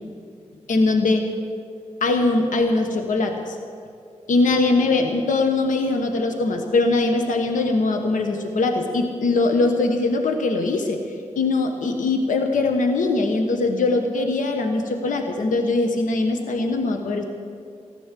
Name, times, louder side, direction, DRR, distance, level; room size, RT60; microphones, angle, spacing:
voice 1, 0.7-1.3 2.0-3.6 4.3-11.0 11.4-17.2, left 3 dB, 85° left, 5 dB, 1.2 m, -21 dB
15.0 x 11.5 x 7.5 m, 2.3 s
cardioid pair, 45°, 13 cm